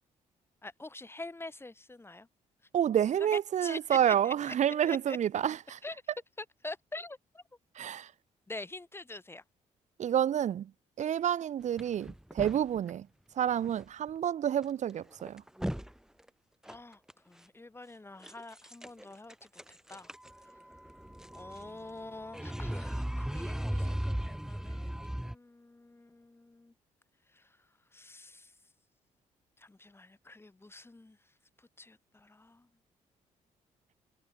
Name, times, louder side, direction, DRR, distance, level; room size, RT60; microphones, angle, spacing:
voice 1, 0.6-2.3 3.3-4.5 4.9-5.2 5.8-5.9 6.4-7.4 8.5-9.4 16.7-17.0 17.3-20.1 21.3-24.9 25.2-26.7 27.3-27.5 27.9-28.5 29.6-31.2 31.8-32.7, left 2 dB, 15° left, 4.6 m, -46 dB
voice 2, 2.7-5.8 7.7-8.1 10.0-10.7 11.0-13.1 13.3-15.4, right 10 dB, 60° right, 1.2 m, -29 dB
sound 1, 11.8-12.9 13.6-13.8 14.1-14.2 14.6-14.7 15.1-15.9 16.2-16.3 16.7-17.1 18.2-19.0 19.3-25.3, equal, 5° right, 3.6 m, -37 dB
cardioid pair, 80°, 13 cm